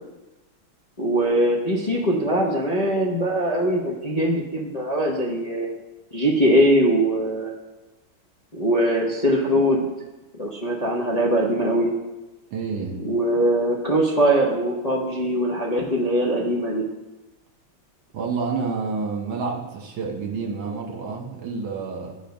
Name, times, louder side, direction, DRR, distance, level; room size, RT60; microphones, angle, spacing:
voice 1, 1.0-5.7 6.1-7.5 8.5-9.9 10.4-11.9 13.0-16.8, right 1 dB, 30° left, -3 dB, 0.7 m, -21 dB
voice 2, 12.5-13.0 18.1-22.2, right 4 dB, 75° right, 1 dB, 2.1 m, -29 dB
10.5 x 5.1 x 5.2 m, 1.0 s
omnidirectional pair, 2.3 m